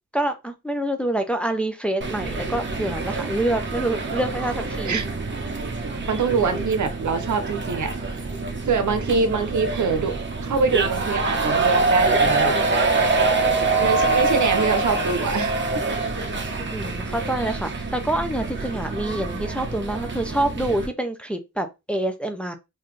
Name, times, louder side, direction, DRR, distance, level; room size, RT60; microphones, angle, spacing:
voice 1, 0.1-5.0 16.7-22.6, right 1 dB, 5° left, 0.5 m, -26 dB
sound 1, 2.0-20.9, right 3 dB, 40° right, 0.9 m, -25 dB
voice 2, 6.1-8.2 8.6-12.6 13.8-15.7, right 5 dB, 80° right, 0.8 m, -24 dB
4.0 x 2.7 x 3.2 m
wide cardioid pair, 140°, 29 cm